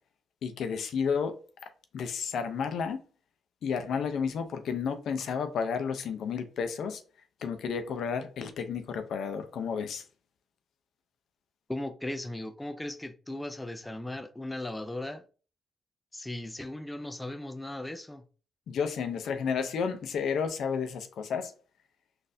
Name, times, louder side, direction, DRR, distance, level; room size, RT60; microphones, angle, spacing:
voice 1, 0.4-1.4 1.9-3.0 3.6-7.0 7.4-10.0 18.7-21.5, left 6 dB, 70° left, 0.5 m, -31 dB
voice 2, 11.7-15.2 16.1-18.2, left 1 dB, 10° left, 0.4 m, -37 dB
4.0 x 2.5 x 2.6 m
cardioid pair, 85°, 0 cm